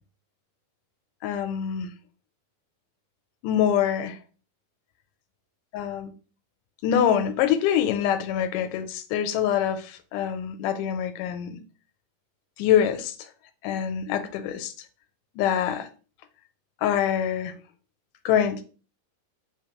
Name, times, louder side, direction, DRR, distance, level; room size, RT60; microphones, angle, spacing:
voice 1, 1.2-1.9 3.4-4.2 5.7-6.1 6.8-11.6 12.6-13.2 13.6-14.7 15.4-15.9 16.8-17.5 18.3-18.6, left 9 dB, 90° left, 2.1 m, -25 dB
4.5 x 3.8 x 2.9 m
omnidirectional pair, 3.7 m